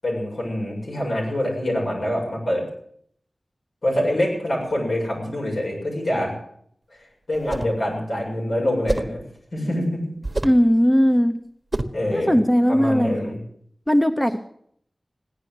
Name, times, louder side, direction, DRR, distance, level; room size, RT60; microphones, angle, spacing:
voice 1, 0.0-2.6 3.8-6.3 7.3-9.2 9.5-10.1 11.9-12.3 12.7-13.4, left 1 dB, 80° left, -2 dB, 7.2 m, -25 dB
sound 1, 7.3-7.8 8.9-9.2 10.2-10.7 11.7-12.1, right 2 dB, 30° right, 1.2 m, -27 dB
voice 2, 10.4-11.4 12.1-13.3 13.9-14.4, equal, 10° left, 7 dB, 0.9 m, -18 dB
16.5 x 10.5 x 7.9 m, 0.66 s
wide cardioid pair, 75°, 0 cm